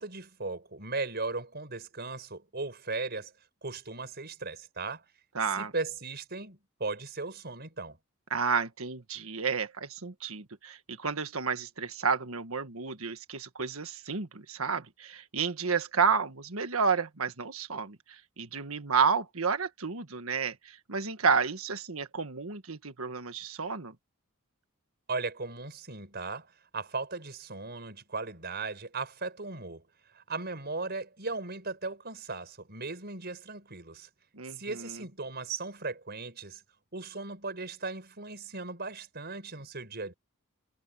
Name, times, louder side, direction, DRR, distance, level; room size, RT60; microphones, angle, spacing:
voice 1, 0.0-3.3 3.6-5.0 5.6-8.0 25.1-29.8 30.1-34.1 34.5-36.6 36.9-40.1, right 3 dB, 50° right, 5.6 m, -37 dB
voice 2, 5.3-5.7 8.3-23.9 34.3-35.0, right 5 dB, 80° right, 1.6 m, -31 dB
head